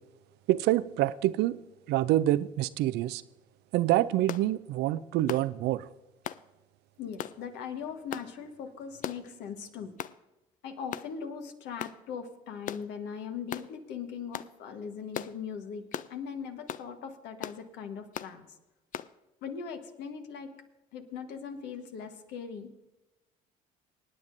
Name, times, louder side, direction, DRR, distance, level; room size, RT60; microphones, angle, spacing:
voice 1, 0.5-1.6 1.9-3.2 3.7-5.9, right 14 dB, 65° right, 17 dB, 0.5 m, -26 dB
sound 1, 4.3-4.5 5.3-5.5 6.2-6.4 7.2-7.4 8.1-8.3 9.0-9.3 10.0-10.2 10.9-11.1 11.8-12.0 12.7-12.9 13.5-13.7 14.3-14.5 15.1-15.3 15.9-16.1 16.7-16.9 17.4-17.6 18.1-18.3 18.9-19.1, left 10 dB, 45° left, 0.4 m, -37 dB
voice 2, 7.0-9.9 10.6-15.8 16.1-18.5 19.4-20.5 20.9-22.7, left 6 dB, 70° left, 6 dB, 1.3 m, -40 dB
24.5 x 9.4 x 2.6 m, 1.0 s
hypercardioid pair, 60°, 18 cm